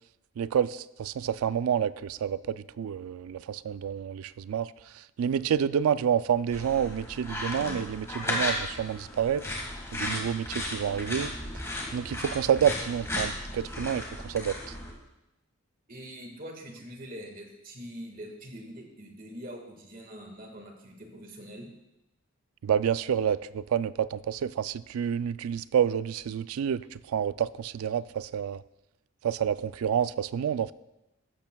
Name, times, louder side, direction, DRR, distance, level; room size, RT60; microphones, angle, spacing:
voice 1, 0.4-9.4 9.9-11.3 11.9-14.6 22.6-28.6 29.2-30.7, right 8 dB, 90° right, 16 dB, 0.3 m, -28 dB
sound 1, 6.5-14.9, left 1 dB, 15° left, 1.6 m, -35 dB
voice 2, 15.9-21.7, equal, 40° right, 2 dB, 1.7 m, -43 dB
14.5 x 12.0 x 2.3 m, 0.93 s
head